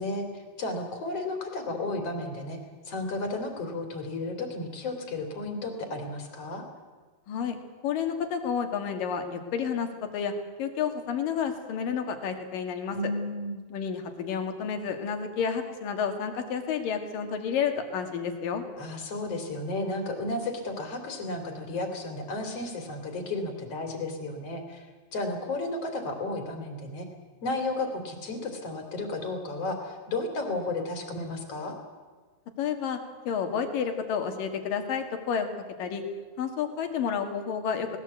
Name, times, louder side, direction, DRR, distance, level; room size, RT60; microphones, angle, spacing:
voice 1, 0.0-2.6 2.9-6.6 12.9-13.6 18.8-27.1 27.4-31.8, left 2 dB, 45° left, 6 dB, 3.4 m, -33 dB
voice 2, 7.3-7.6 7.8-10.3 10.6-13.0 13.7-18.7 32.6-33.0 33.3-35.5 35.8-36.0 36.4-37.9, left 7 dB, 65° left, 6 dB, 3.4 m, -30 dB
19.5 x 19.0 x 8.2 m, 1.4 s
omnidirectional pair, 4.3 m